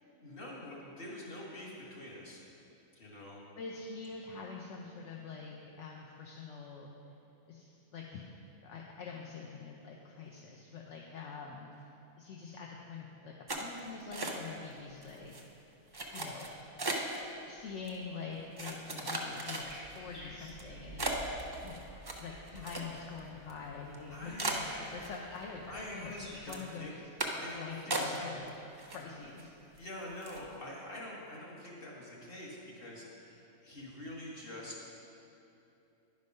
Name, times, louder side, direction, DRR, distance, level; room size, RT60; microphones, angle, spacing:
voice 1, 0.2-2.4 2.9-3.4 24.1-24.4 25.7-26.9 27.3-28.4 29.1-29.2 29.7-34.8, left 1 dB, 40° left, -4 dB, 1.7 m, -45 dB
voice 2, 3.6-6.9 7.5-8.3 8.6-11.7 12.2-15.7 16.1-16.5 17.5-26.2 26.4-27.0 27.5-29.5, left 5 dB, 60° left, -1 dB, 0.9 m, -45 dB
sound 1, 13.5-14.7 15.0-15.4 15.9-17.2 17.9-18.0 18.6-20.0 20.5-20.6 21.0-23.2 23.5-23.6 23.9-24.0 24.4-25.4 25.8-26.2 26.5-26.7 27.2-27.5 27.9-28.5 28.8-29.4 29.8-29.9 30.2-30.5, right 2 dB, 40° right, 0.3 m, -37 dB
sound 2, 19.6-26.4, right 1 dB, 80° left, 2.9 m, -52 dB
10.5 x 5.2 x 5.3 m, 2.8 s
omnidirectional pair, 1.6 m